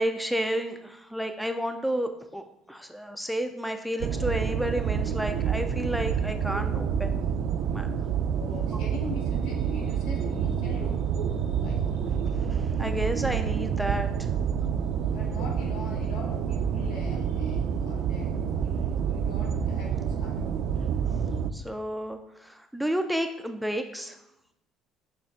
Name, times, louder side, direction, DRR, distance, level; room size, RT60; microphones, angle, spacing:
voice 1, 0.0-7.2 7.7-7.9 12.5-14.1 21.5-24.2, equal, ahead, 6 dB, 0.4 m, -31 dB
sound 1, 4.0-21.5, right 7 dB, 60° right, 0.4 m, -28 dB
voice 2, 8.4-12.4 14.6-20.5, left 2 dB, 85° left, -1 dB, 1.9 m, -42 dB
6.7 x 3.3 x 5.7 m, 0.83 s
cardioid pair, 145°, 0 cm